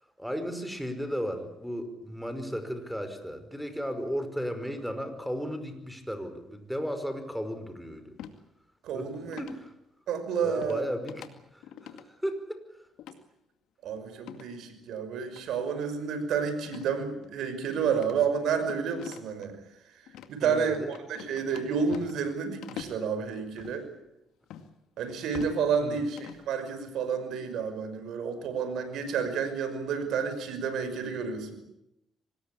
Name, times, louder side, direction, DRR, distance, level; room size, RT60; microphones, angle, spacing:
voice 1, 0.2-8.1 8.9-9.1 9.4-9.7 10.4-11.3 11.5-12.6 20.4-20.9 25.8-26.0, equal, ahead, 9 dB, 5.2 m, -35 dB
sound 1, 8.2-8.4 9.3-9.6 10.6-10.8 11.1-11.3 11.6-12.0 13.0-13.2 14.2-14.5 15.3-15.4 16.7-16.9 17.2-17.3 17.9-19.5 20.1-20.3 20.9-22.3 22.6-23.0 23.5-23.8 24.5-24.7 25.1-25.6 26.0-26.4, left 9 dB, 90° left, 2.2 m, -44 dB
voice 2, 8.8-9.4 10.1-10.9 13.8-19.6 19.9-20.0 20.3-23.9 25.0-31.6, right 6 dB, 80° right, 9 dB, 5.7 m, -30 dB
25.0 x 20.0 x 8.6 m, 0.83 s
cardioid pair, 90°, 0 cm